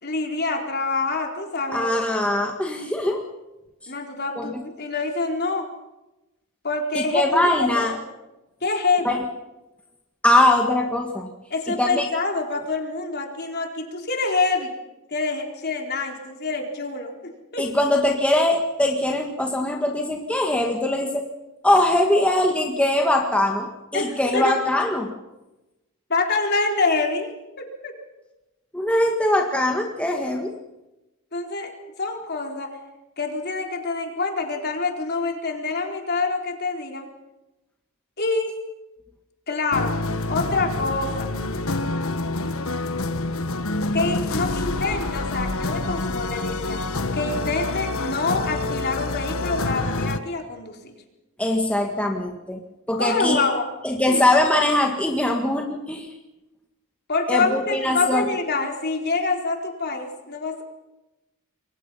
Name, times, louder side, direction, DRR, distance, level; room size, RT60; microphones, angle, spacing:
voice 1, 0.0-1.9 3.9-5.7 6.6-7.9 8.6-9.2 11.5-14.7 15.1-17.7 23.9-24.5 26.1-27.3 27.6-27.9 31.3-32.8 33.2-37.1 38.2-38.5 39.5-40.0 40.3-41.3 43.9-46.8 47.1-50.9 53.0-53.7 54.1-54.2 57.1-60.6, left 3 dB, 45° left, 2 dB, 4.2 m, -26 dB
voice 2, 1.7-3.2 4.4-4.6 6.9-8.0 9.0-9.3 10.2-11.3 11.8-12.1 17.6-21.3 21.6-25.1 28.7-30.5 51.4-53.4 53.8-56.2 57.3-58.3, left 1 dB, 5° left, 1 dB, 1.8 m, -22 dB
sound 1, 39.7-50.2, left 2 dB, 70° left, 1.4 m, -27 dB
28.0 x 23.0 x 5.7 m, 1.0 s
head